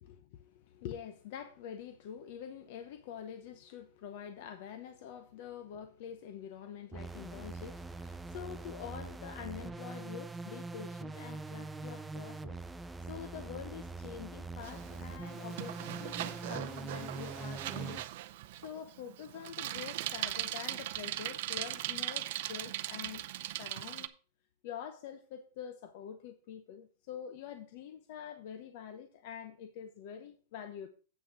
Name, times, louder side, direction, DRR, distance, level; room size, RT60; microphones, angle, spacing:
voice 1, 0.0-18.0 18.6-23.2 23.6-24.1 24.6-30.9, left 9 dB, 50° left, 0.8 m, -46 dB
sound 1, 6.9-18.0, right 3 dB, 5° right, 0.4 m, -43 dB
Bicycle, 14.6-24.1, right 15 dB, 50° right, 0.6 m, -39 dB
8.3 x 6.2 x 4.8 m
supercardioid pair, 165°, 0 cm